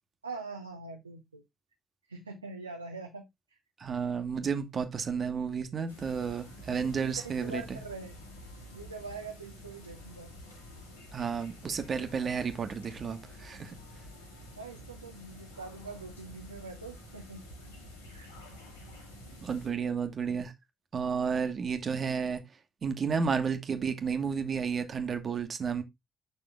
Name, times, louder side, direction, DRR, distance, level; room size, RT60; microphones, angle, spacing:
voice 1, 0.2-1.4 2.1-3.6 6.7-8.2 8.7-10.3 14.6-17.4 18.0-18.3, right 3 dB, 85° right, 0.7 m, -44 dB
voice 2, 3.8-7.8 11.1-13.7 19.4-20.5 20.9-22.4 22.8-25.8, right 6 dB, 45° right, 1.4 m, -32 dB
sound 1, 5.9-19.7, equal, 80° left, 2.0 m, -49 dB
7.2 x 6.0 x 3.4 m
figure-of-eight pair, 45°, 0 cm